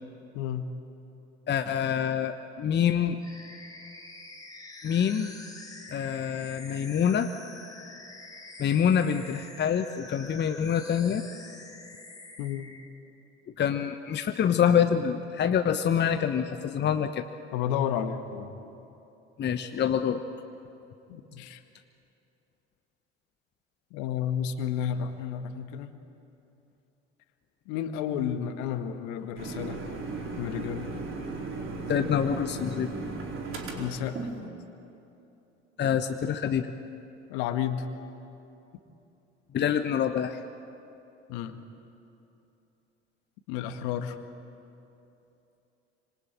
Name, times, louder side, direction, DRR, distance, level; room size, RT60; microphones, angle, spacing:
voice 1, 0.3-0.7 12.4-12.7 17.5-18.6 21.1-21.6 23.9-25.9 27.7-29.8 30.4-30.9 33.8-34.2 37.3-37.9 41.3-41.6 43.5-44.2, left 9 dB, 60° left, 8 dB, 1.9 m, -31 dB
voice 2, 1.5-3.2 4.8-5.3 5.9-7.3 8.6-11.2 13.6-17.3 19.4-20.2 31.9-32.9 35.8-36.7 39.5-40.4, left 8 dB, 30° left, 8 dB, 1.1 m, -26 dB
sound 1, 3.2-12.9, left 2 dB, 10° left, 4.4 m, -46 dB
sound 2, 29.4-34.4, right 3 dB, 40° right, 4.4 m, -36 dB
26.0 x 26.0 x 8.9 m, 2.9 s
figure-of-eight pair, 65°, 33 cm